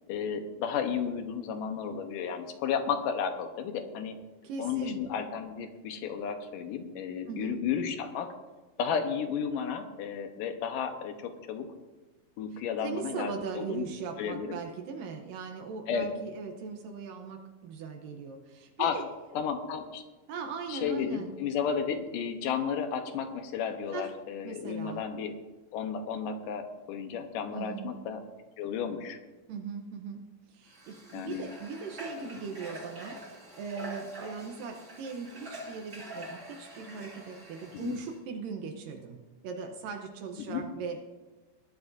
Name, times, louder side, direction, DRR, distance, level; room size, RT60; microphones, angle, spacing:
voice 1, 0.1-4.2 4.6-8.3 8.8-11.7 12.4-13.9 14.2-14.6 15.9-16.1 18.8-19.0 19.3-20.0 20.7-25.3 25.7-28.2 28.6-29.2 31.1-31.4 37.7-38.0 40.5-40.6, left 7 dB, 75° left, 6 dB, 2.6 m, -33 dB
voice 2, 4.4-5.0 7.3-7.6 12.5-19.1 20.3-21.4 23.9-24.1 24.4-25.0 27.5-28.0 29.5-41.0, right 5 dB, 75° right, 3 dB, 2.6 m, -39 dB
Water / Water tap faucet, 30.7-38.2, equal, 20° right, 3.2 m, -46 dB
20.5 x 12.5 x 2.7 m, 1.2 s
omnidirectional pair, 4.0 m